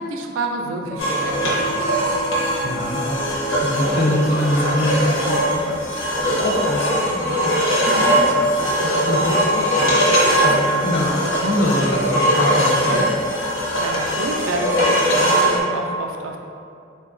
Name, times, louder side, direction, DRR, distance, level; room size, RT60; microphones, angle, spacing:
voice 1, 0.0-1.7 13.8-16.4, right 2 dB, 80° right, 2 dB, 0.3 m, -28 dB
Piano, 0.8-11.3, right 2 dB, 5° right, 0.5 m, -35 dB
sound 1, 1.0-15.6, equal, 85° left, 0.7 m, -20 dB
voice 2, 2.5-3.2 3.6-5.8 6.3-13.0, left 1 dB, 50° left, -2 dB, 0.5 m, -24 dB
3.8 x 2.2 x 2.4 m, 2.5 s
head